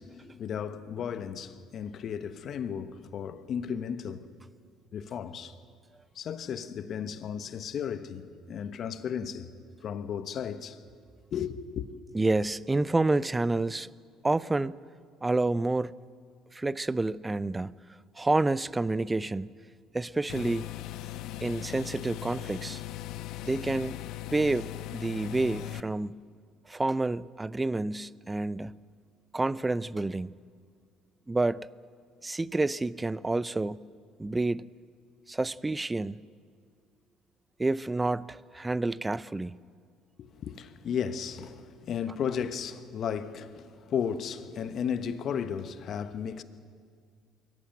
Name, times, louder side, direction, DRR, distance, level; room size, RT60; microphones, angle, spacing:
voice 1, 0.0-4.3 4.9-5.5 6.1-9.5 9.8-10.8 11.3-11.9 40.2-46.4, left 7 dB, 55° left, 1.2 m, -34 dB
voice 2, 12.1-13.9 14.2-14.8 15.2-15.9 16.5-17.7 18.2-19.5 19.9-20.7 21.4-22.8 23.4-24.0 24.3-26.2 26.7-28.8 29.3-30.3 31.3-31.7 32.2-33.9 34.2-34.7 35.3-36.2 37.6-39.6, right 2 dB, 15° right, 0.5 m, -29 dB
sound 1, 20.3-25.8, left 13 dB, 70° left, 0.6 m, -39 dB
23.0 x 14.5 x 9.3 m
supercardioid pair, 90°, 0 cm